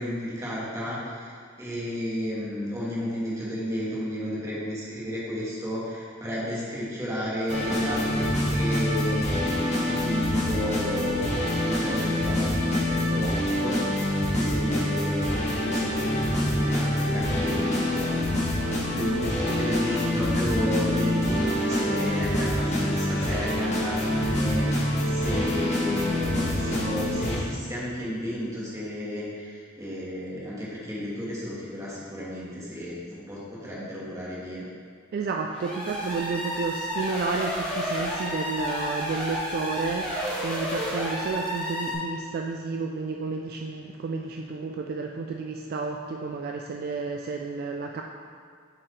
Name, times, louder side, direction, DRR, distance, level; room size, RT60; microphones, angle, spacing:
voice 1, 0.0-1.3 1.6-9.5 9.8-34.6, equal, 15° right, -7 dB, 1.5 m, -32 dB
sound 1, 7.5-27.4, left 1 dB, 35° left, 1.4 m, -26 dB
voice 2, 35.1-48.0, right 4 dB, 50° right, 2 dB, 0.3 m, -31 dB
sound 2, 35.5-41.9, equal, 5° left, 1.3 m, -31 dB
7.6 x 4.5 x 3.2 m, 2.1 s
head